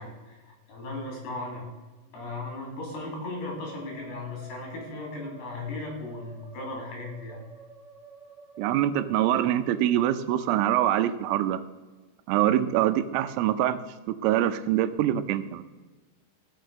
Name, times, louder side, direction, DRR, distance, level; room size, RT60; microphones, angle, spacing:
voice 1, 0.0-1.6 2.1-7.4, left 2 dB, 55° left, 0 dB, 4.6 m, -37 dB
Musical instrument, 2.0-10.7, right 2 dB, 20° right, 2.2 m, -50 dB
voice 2, 8.6-11.6 12.3-13.8 14.1-15.6, right 12 dB, 85° right, 12 dB, 3.3 m, -24 dB
16.0 x 6.7 x 6.5 m, 1.2 s
omnidirectional pair, 5.8 m